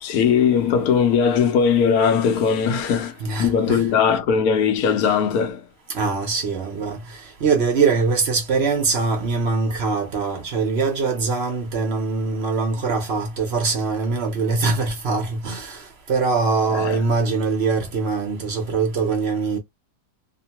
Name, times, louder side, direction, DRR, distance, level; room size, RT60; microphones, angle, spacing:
voice 1, 0.0-5.6 16.7-17.0, left 7 dB, 90° left, 1.1 m, -19 dB
voice 2, 3.2-3.8 5.9-7.0 7.4-15.8 16.1-19.6, right 4 dB, 55° right, 0.9 m, -22 dB
2.8 x 2.2 x 2.8 m
omnidirectional pair, 1.5 m